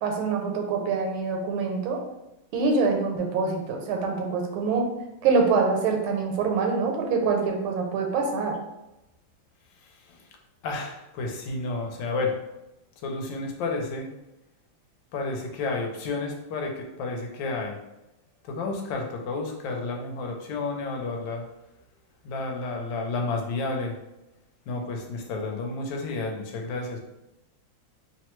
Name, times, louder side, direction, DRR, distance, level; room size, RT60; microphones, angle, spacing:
voice 1, 0.0-2.0 2.5-4.9 5.2-8.6, right 4 dB, 85° right, 2 dB, 1.4 m, -25 dB
voice 2, 9.8-10.3 10.6-12.4 13.0-14.1 15.1-17.8 18.4-21.5 22.2-24.0 24.7-27.0, left 3 dB, 75° left, 2 dB, 1.2 m, -31 dB
3.2 x 2.0 x 3.0 m, 0.93 s
omnidirectional pair, 2.2 m